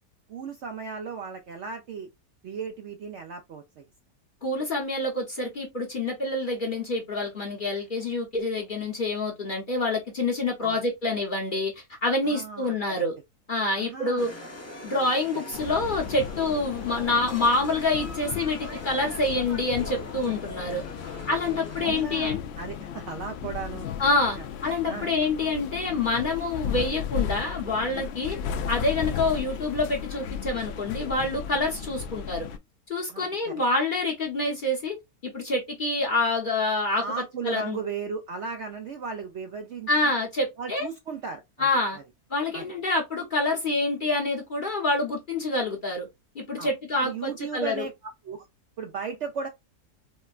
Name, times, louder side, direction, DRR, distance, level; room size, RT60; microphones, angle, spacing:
voice 1, 0.3-2.1 2.4-3.9 10.6-10.8 12.2-13.0 13.8-14.3 21.8-23.9 24.4-24.5 24.9-25.1 33.1-33.6 37.0-40.1 40.6-42.0 42.5-42.7 46.6-46.7 47.0-47.9 48.2-48.4 48.8-49.5, right 5 dB, 65° right, 0.7 m, -36 dB
voice 2, 4.4-13.1 13.5-14.3 14.8-18.6 18.8-20.8 21.3-22.4 24.0-28.4 28.7-32.5 32.9-34.9 35.2-37.0 37.4-37.8 39.9-40.9 41.6-42.0 42.3-46.1 46.3-47.8, left 2 dB, 40° left, 0.8 m, -27 dB
sound 1, 14.2-22.0, left 1 dB, 10° left, 0.8 m, -43 dB
sound 2, 15.5-32.6, left 7 dB, 85° left, 0.5 m, -35 dB
4.3 x 2.1 x 2.3 m
omnidirectional pair, 1.7 m